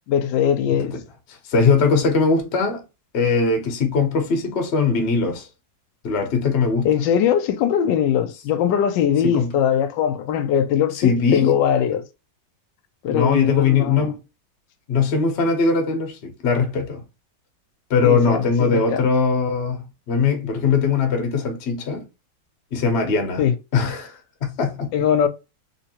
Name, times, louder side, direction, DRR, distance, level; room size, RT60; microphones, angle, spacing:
voice 1, 0.1-0.9 6.8-12.0 13.0-14.1 18.0-19.1 23.4-23.6 24.9-25.3, left 9 dB, 90° left, 1.3 m, -21 dB
voice 2, 1.5-2.8 3.1-5.5 6.0-6.9 9.2-9.5 10.9-11.5 13.1-14.2 14.9-17.0 17.9-22.0 22.7-23.4 23.7-24.9, left 5 dB, 45° left, 0.9 m, -20 dB
3.3 x 2.9 x 2.8 m
omnidirectional pair, 1.9 m